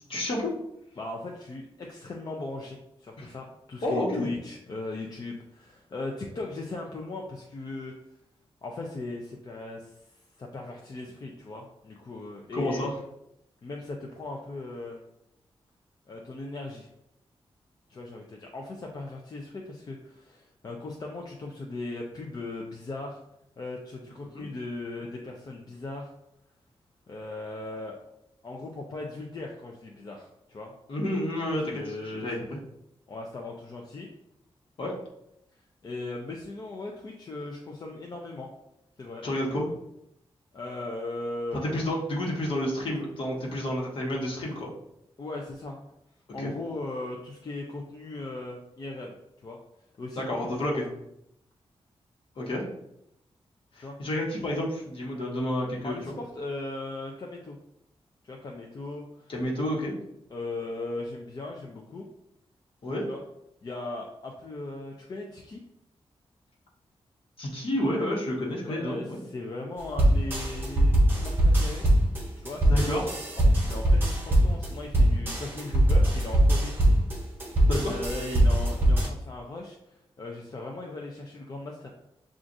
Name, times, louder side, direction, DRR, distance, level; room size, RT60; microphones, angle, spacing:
voice 1, 0.1-0.5 3.2-3.3 3.8-4.3 12.5-12.9 24.3-24.4 30.9-32.6 34.8-35.0 39.2-39.7 41.5-44.7 46.4-46.5 50.2-50.9 52.4-52.7 53.7-56.1 59.3-59.9 62.8-63.0 67.4-69.2 72.6-73.0 77.7-78.0, left 1 dB, 60° left, -2 dB, 1.2 m, -30 dB
voice 2, 1.0-7.9 8.6-10.0 10.4-12.9 13.6-15.0 16.1-16.9 17.9-23.2 23.6-26.1 27.1-28.0 28.4-30.7 31.7-32.3 33.1-34.1 35.8-38.5 39.0-39.3 40.5-41.6 45.2-45.8 46.3-49.6 50.0-50.5 53.8-54.0 55.8-57.6 58.2-59.3 60.3-62.1 63.1-63.2 63.6-65.6 68.7-71.9 72.4-73.0 73.5-76.8 77.9-81.9, left 2 dB, 40° left, 0 dB, 0.5 m, -38 dB
sound 1, 70.0-79.1, right 1 dB, 20° right, 1.1 m, -22 dB
7.3 x 2.4 x 2.6 m, 0.81 s
wide cardioid pair, 150°, 10 cm